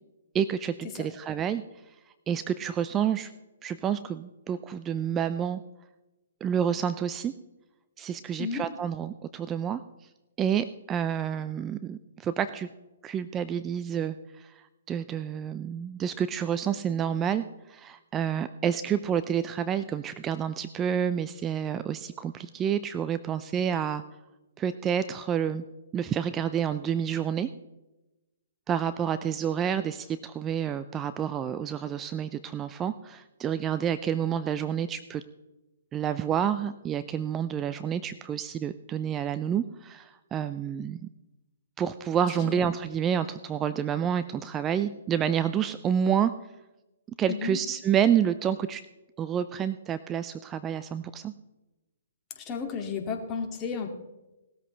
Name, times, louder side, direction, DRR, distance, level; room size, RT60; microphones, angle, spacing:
voice 1, 0.3-1.9 2.3-3.3 3.6-5.6 6.4-7.3 8.0-9.8 10.4-12.7 13.0-24.0 24.6-25.6 25.9-27.5 28.7-35.2 35.9-41.1 41.8-46.3 47.2-48.8 49.2-51.3, right 8 dB, 20° right, 12 dB, 0.5 m, -29 dB
voice 2, 47.3-47.6 52.4-53.9, left 5 dB, 25° left, 2 dB, 2.3 m, -33 dB
18.5 x 13.5 x 3.3 m, 1.0 s
hypercardioid pair, 135°, 0 cm